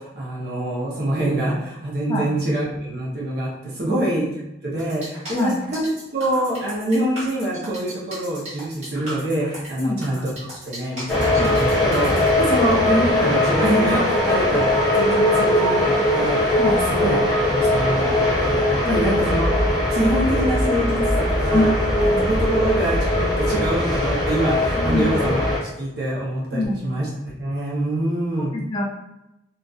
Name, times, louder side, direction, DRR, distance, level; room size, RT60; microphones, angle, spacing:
voice 1, 0.0-4.3 4.6-10.3 10.7-14.7 14.9-21.7 22.2-27.1 27.4-28.5, right 1 dB, 55° right, -5 dB, 0.6 m, -25 dB
sound 1, 4.8-12.3, right 1 dB, 35° right, 0.9 m, -37 dB
sound 2, 11.1-25.6, left 1 dB, 5° left, 0.8 m, -20 dB
voice 2, 21.5-22.2 24.8-25.0 26.5-26.8 28.7-28.8, left 1 dB, 25° left, -2 dB, 0.3 m, -24 dB
2.5 x 2.3 x 2.3 m, 0.89 s
head